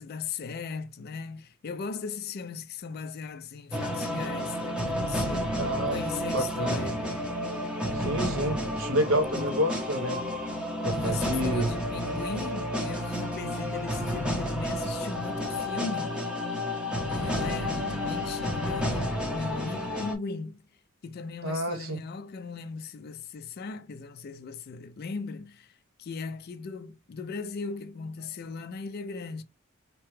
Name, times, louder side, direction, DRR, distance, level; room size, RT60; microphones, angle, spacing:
voice 1, 0.0-7.1 7.4-7.7 9.3-9.5 10.9-16.2 17.1-20.6 21.0-29.4, left 4 dB, 45° left, 0.3 m, -38 dB
sound 1, 3.7-20.1, equal, 5° right, 0.6 m, -31 dB
voice 2, 5.5-6.0 6.3-6.7 7.9-10.2 10.8-11.7 21.4-22.0, equal, 70° right, 0.8 m, -29 dB
2.8 x 2.2 x 3.0 m
head